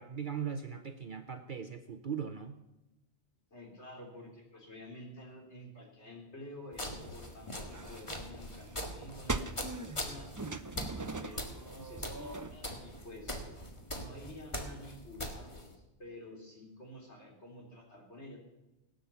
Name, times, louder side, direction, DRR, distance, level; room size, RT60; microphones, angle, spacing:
voice 1, 0.0-2.6, right 7 dB, 50° right, 8 dB, 0.9 m, -39 dB
voice 2, 3.5-10.4 10.9-13.4 13.9-18.4, left 1 dB, 70° left, 0 dB, 3.9 m, -50 dB
sound 1, 6.7-15.8, left 1 dB, 25° left, 1.8 m, -42 dB
sound 2, 7.0-12.6, right 2 dB, 20° right, 0.5 m, -42 dB
17.5 x 9.3 x 6.9 m, 0.97 s
omnidirectional pair, 1.2 m